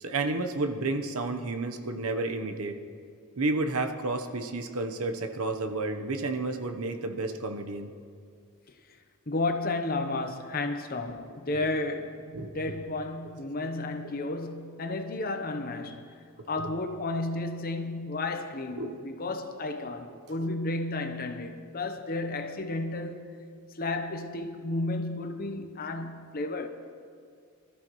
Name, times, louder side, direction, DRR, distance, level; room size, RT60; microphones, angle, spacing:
voice 1, 0.0-2.7 3.4-7.9 12.3-12.7 16.4-16.7 18.8-18.9 20.4-20.5, right 2 dB, 75° right, 1.0 m, -31 dB
voice 2, 9.3-16.1 16.5-23.3 23.7-26.7, left 2 dB, 40° left, 0.9 m, -32 dB
24.5 x 13.5 x 3.2 m
head